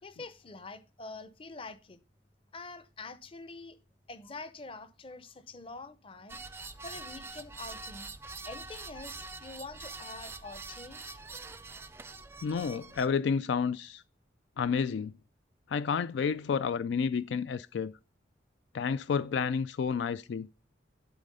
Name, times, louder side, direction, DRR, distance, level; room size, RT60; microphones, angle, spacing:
voice 1, 0.0-2.0 2.5-3.8 4.1-6.4 6.8-8.1 8.4-11.2, left 3 dB, 30° left, 0.7 m, -45 dB
sound 1, 6.3-13.1, right 3 dB, 15° right, 0.4 m, -45 dB
voice 2, 12.4-14.0 14.6-15.1 15.7-17.9 18.7-20.5, left 6 dB, 70° left, 0.3 m, -30 dB
11.0 x 4.1 x 5.3 m
head